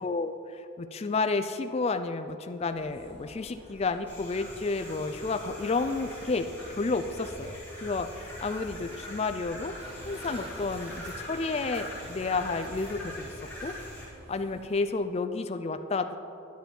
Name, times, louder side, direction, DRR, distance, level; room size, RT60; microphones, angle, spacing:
voice 1, 0.0-9.7 10.0-13.3 13.6-13.7 14.3-16.2, left 3 dB, 30° left, 8 dB, 0.3 m, -31 dB
sound 1, 2.7-14.6, right 1 dB, 45° right, 1.6 m, -54 dB
sound 2, 4.1-14.1, left 1 dB, 5° left, 2.2 m, -43 dB
sound 3, 9.8-14.9, right 1 dB, 30° right, 0.9 m, -50 dB
10.5 x 9.3 x 4.4 m, 2.9 s
head